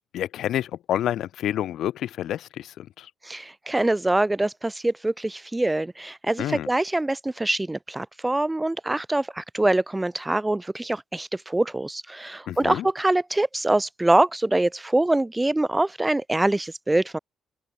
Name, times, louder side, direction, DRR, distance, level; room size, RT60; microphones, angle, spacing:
voice 1, 0.1-3.1 6.4-6.7 12.5-12.9, left 11 dB, 75° left, 0.5 m, -28 dB
voice 2, 3.2-17.2, right 2 dB, 15° right, 0.3 m, -24 dB
cardioid pair, 90°, 0 cm